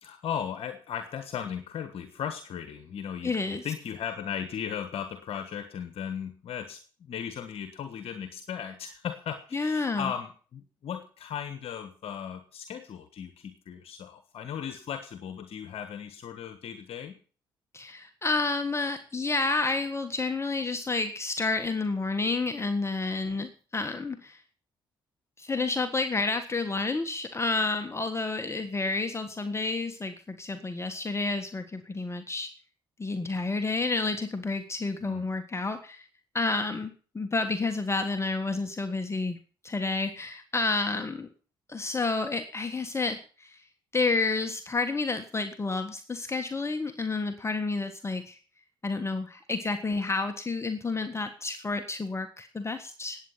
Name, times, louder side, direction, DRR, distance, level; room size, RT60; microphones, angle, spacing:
voice 1, 0.0-17.2 35.0-35.3, left 8 dB, 60° left, 9 dB, 1.4 m, -37 dB
voice 2, 3.2-3.7 9.5-10.1 17.7-24.4 25.4-32.5 33.0-36.0 36.3-39.4 39.6-41.3 41.7-43.6 43.9-48.4 48.8-53.2, left 3 dB, 25° left, 7 dB, 1.6 m, -30 dB
19.5 x 8.8 x 5.8 m, 0.41 s
hypercardioid pair, 50°, 11 cm